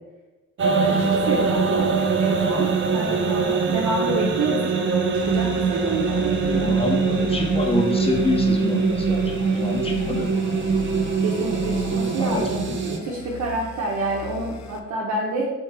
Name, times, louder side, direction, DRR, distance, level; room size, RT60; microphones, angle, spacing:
sound 1, 0.6-13.0, right 5 dB, 40° right, 0.6 m, -23 dB
voice 1, 0.6-1.9 2.2-6.7 11.2-15.5, right 2 dB, 65° right, -3 dB, 0.9 m, -28 dB
sound 2, 5.2-14.8, left 6 dB, 65° left, 0.5 m, -37 dB
voice 2, 6.5-10.3 12.2-12.8, left 3 dB, 20° left, 2 dB, 0.8 m, -27 dB
4.5 x 3.2 x 3.3 m, 1.1 s
cardioid pair, 90°, 30 cm